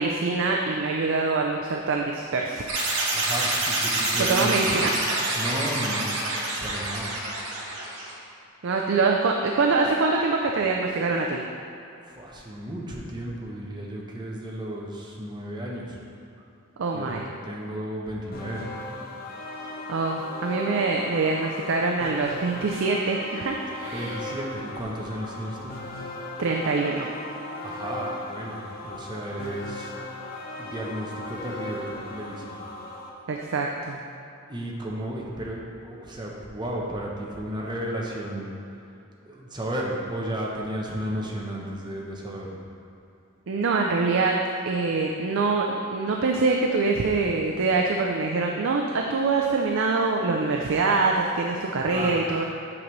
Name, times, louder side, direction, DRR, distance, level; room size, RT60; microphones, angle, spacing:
voice 1, 0.0-2.7 4.2-4.9 8.6-11.4 16.8-17.2 19.9-24.2 26.4-27.1 33.3-34.0 43.5-52.4, right 3 dB, 60° right, 1 dB, 0.4 m, -24 dB
sound 1, 2.7-8.1, right 2 dB, 85° right, 1.3 m, -27 dB
voice 2, 3.1-4.9 5.4-6.1 6.6-7.1 12.0-16.0 16.9-18.9 23.9-25.7 27.6-29.9 30.6-32.6 34.5-38.5 39.2-42.6 51.9-52.2, right 1 dB, 20° right, -2 dB, 0.9 m, -33 dB
sound 2, 18.3-33.1, left 2 dB, 45° left, 0.7 m, -37 dB
8.7 x 5.2 x 3.2 m, 2.7 s
head